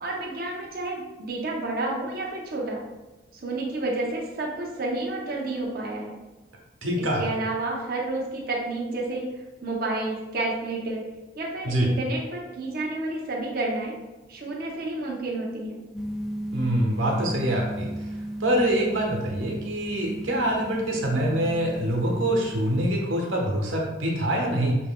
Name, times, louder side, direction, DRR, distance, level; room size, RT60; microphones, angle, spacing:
voice 1, 0.0-2.8 3.3-6.1 7.0-9.3 9.6-11.0 11.4-14.0 14.3-15.8, right 2 dB, 50° right, -2 dB, 0.7 m, -30 dB
voice 2, 6.8-7.3 11.6-11.9 16.5-18.1 18.4-24.8, right 1 dB, 85° right, -1 dB, 1.1 m, -25 dB
sound 1, 15.9-22.9, right 1 dB, ahead, 0.3 m, -35 dB
7.1 x 3.1 x 2.2 m, 1.1 s
head